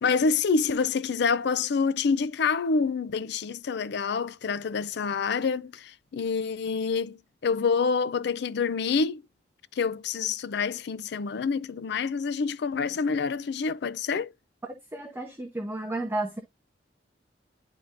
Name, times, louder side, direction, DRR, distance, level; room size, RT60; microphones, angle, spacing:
voice 1, 0.0-9.2 9.7-14.3, left 5 dB, 65° left, 0.4 m, -27 dB
voice 2, 14.9-16.4, right 2 dB, 15° right, 0.9 m, -32 dB
11.0 x 3.6 x 2.5 m
head